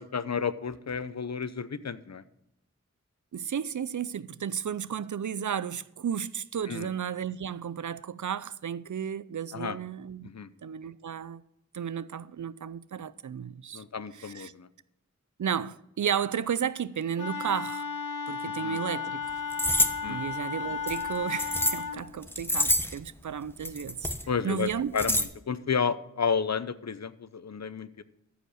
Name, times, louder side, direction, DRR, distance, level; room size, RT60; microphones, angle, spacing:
voice 1, 0.0-2.2 6.7-6.9 9.5-9.8 10.2-10.5 13.7-14.7 18.6-18.8 20.0-20.2 24.3-28.0, left 6 dB, 60° left, 0.7 m, -32 dB
voice 2, 3.3-10.3 10.6-11.4 11.7-13.8 14.2-14.5 15.4-17.8 18.3-19.3 20.1-24.1 24.4-24.9, right 8 dB, 75° right, 0.5 m, -33 dB
Wind instrument woodwind instrument, 17.2-22.0, left 5 dB, 80° left, 1.1 m, -34 dB
sound 1, 19.5-19.9 20.9-21.8 22.2-23.0 23.6-24.2 24.7-25.2, left 1 dB, 5° left, 1.1 m, -26 dB
14.0 x 5.1 x 6.3 m
wide cardioid pair, 45°, 30 cm